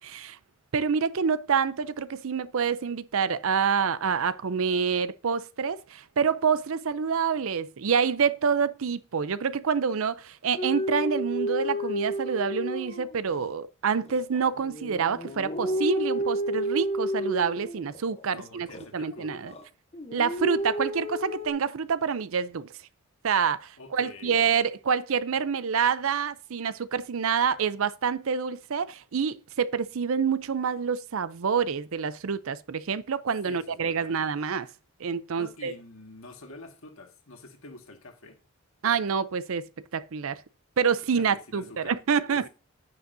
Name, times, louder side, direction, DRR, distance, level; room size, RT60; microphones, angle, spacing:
voice 1, 0.0-0.4 0.7-18.7 18.9-19.5 20.1-22.7 23.2-34.7 35.0-35.7 38.8-39.6 39.9-40.4 40.8-42.5, right 6 dB, 65° right, 0.5 m, -27 dB
sound 1, 10.6-13.5 14.0-18.2 18.7-19.6 19.9-21.5, equal, 25° left, 0.8 m, -31 dB
voice 2, 18.3-19.5 23.8-24.4 33.5-34.2 35.4-38.4 41.1-42.0 42.3-42.4, left 2 dB, 65° left, 1.8 m, -46 dB
9.7 x 9.6 x 2.7 m
head